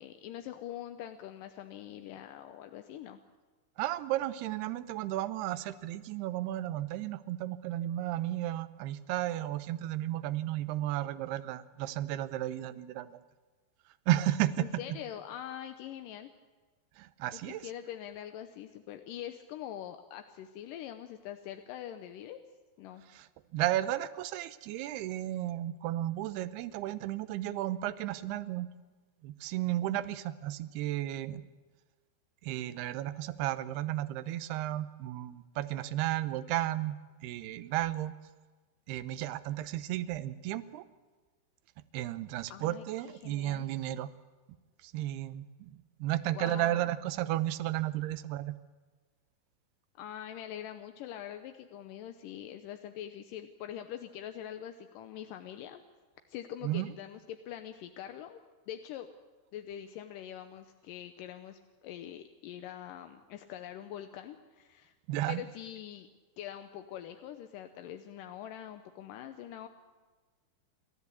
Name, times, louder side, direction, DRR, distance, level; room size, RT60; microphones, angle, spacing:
voice 1, 0.0-3.2 14.6-16.3 17.3-22.4 22.8-23.0 42.5-43.7 46.3-46.9 50.0-55.8 56.3-58.4 58.7-59.1 59.5-64.9 65.3-66.1 66.4-69.7, left 11 dB, 75° left, 7 dB, 2.1 m, -44 dB
voice 2, 3.8-13.2 14.1-14.7 17.0-17.7 23.1-23.3 23.5-28.7 29.2-31.4 32.4-37.0 37.2-38.1 38.9-40.8 41.9-44.1 44.8-48.5 56.6-56.9 65.1-65.4, right 14 dB, 85° right, 14 dB, 2.8 m, -33 dB
28.5 x 13.5 x 8.3 m, 1.3 s
omnidirectional pair, 4.6 m